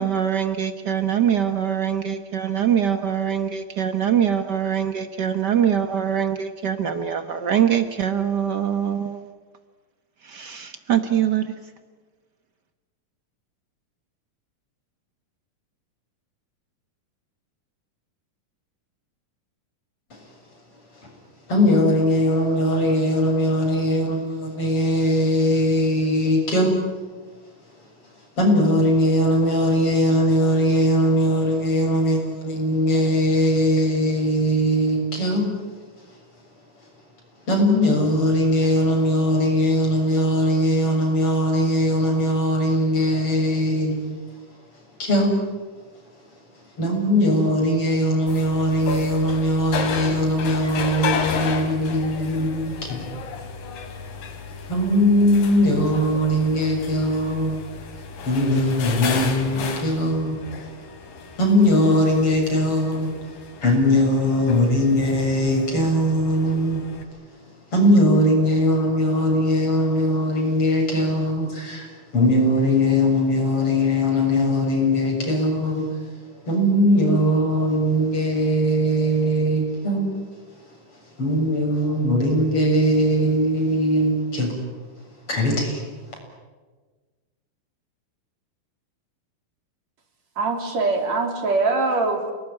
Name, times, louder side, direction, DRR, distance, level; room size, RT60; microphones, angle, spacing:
voice 1, 0.0-9.3 10.2-11.5, right 9 dB, 90° right, 0.9 m, -23 dB
voice 2, 21.5-26.7 28.4-35.5 37.5-44.0 45.0-45.4 46.8-53.0 54.7-57.6 57.9-60.4 61.4-63.1 63.6-66.8 67.7-75.9 76.5-80.1 81.2-84.5 85.3-85.8, equal, 40° left, 7.7 m, -20 dB
sound 1, 48.3-67.0, left 5 dB, 90° left, 4.2 m, -33 dB
voice 3, 90.4-92.3, right 3 dB, 55° right, 4.5 m, -22 dB
28.5 x 20.0 x 10.0 m
omnidirectional pair, 3.8 m